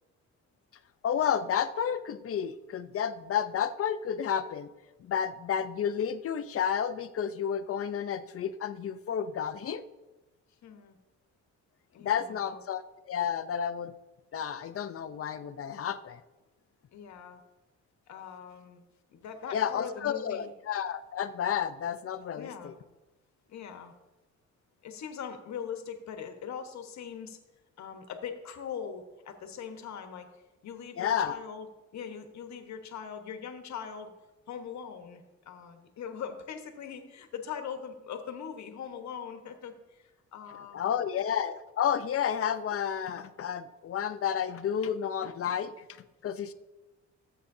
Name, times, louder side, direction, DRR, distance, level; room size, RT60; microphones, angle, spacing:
voice 1, 1.0-4.7 5.0-9.8 12.0-13.9 14.3-16.2 19.5-22.7 31.0-31.4 40.7-45.7 46.2-46.5, left 8 dB, 50° left, 11 dB, 0.7 m, -31 dB
voice 2, 10.6-11.0 11.9-12.6 16.9-17.4 18.1-20.5 22.3-22.7 23.5-23.9 24.8-27.4 27.8-30.3 30.6-34.1 34.5-41.1, left 7 dB, 65° left, 6 dB, 1.3 m, -41 dB
15.5 x 7.9 x 2.7 m, 1.1 s
cardioid pair, 90°, 30 cm